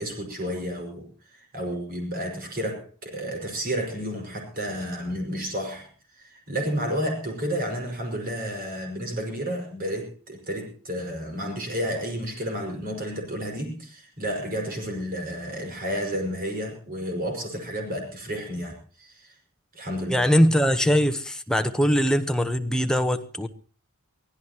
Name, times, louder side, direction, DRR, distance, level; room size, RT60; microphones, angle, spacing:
voice 1, 0.0-5.9 6.2-19.3 19.7-20.3, equal, 45° right, 5.6 m, -31 dB
voice 2, 20.1-23.5, equal, 5° left, 1.0 m, -21 dB
24.0 x 16.0 x 3.0 m
head